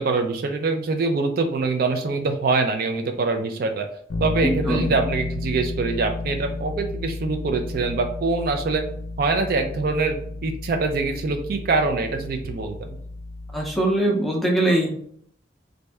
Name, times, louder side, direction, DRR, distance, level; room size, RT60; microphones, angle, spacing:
voice 1, 0.0-3.9 4.2-8.8 9.2-10.2 10.4-12.9, right 3 dB, 55° right, 6 dB, 0.4 m, -24 dB
Bass guitar, 4.1-14.0, left 3 dB, 85° left, 0.5 m, -32 dB
voice 2, 4.4-4.9 13.5-14.9, right 1 dB, ahead, -2 dB, 0.6 m, -22 dB
3.1 x 2.6 x 3.3 m, 0.63 s
head